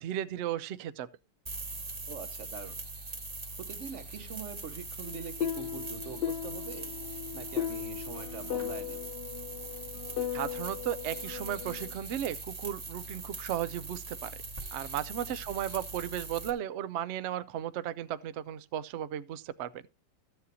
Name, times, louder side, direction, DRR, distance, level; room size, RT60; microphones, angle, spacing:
voice 1, 0.0-1.1 10.3-14.3 14.7-19.8, right 11 dB, 80° right, 0.6 m, -35 dB
sound 1, 1.5-16.5, right 3 dB, 25° right, 1.0 m, -42 dB
voice 2, 2.1-2.8 3.6-6.9 7.3-9.0, right 7 dB, 55° right, 0.9 m, -43 dB
sound 2, 5.0-11.9, left 10 dB, 90° left, 0.5 m, -37 dB
14.0 x 7.6 x 2.7 m
omnidirectional pair, 1.9 m